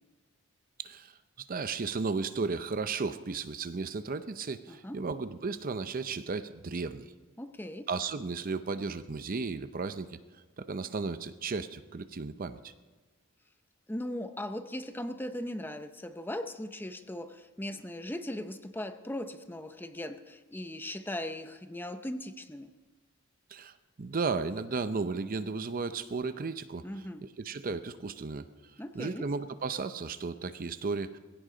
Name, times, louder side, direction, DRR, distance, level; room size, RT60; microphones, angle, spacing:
voice 1, 0.8-1.1 1.5-7.1 7.9-10.2 10.6-12.7 23.5-26.9 27.2-28.5 29.0-31.2, right 4 dB, 40° right, 11 dB, 0.6 m, -34 dB
voice 2, 4.7-5.0 7.4-7.9 13.9-22.7 26.8-27.2 28.8-29.3, left 1 dB, 10° left, 9 dB, 0.6 m, -38 dB
21.5 x 16.5 x 3.9 m, 1.3 s
head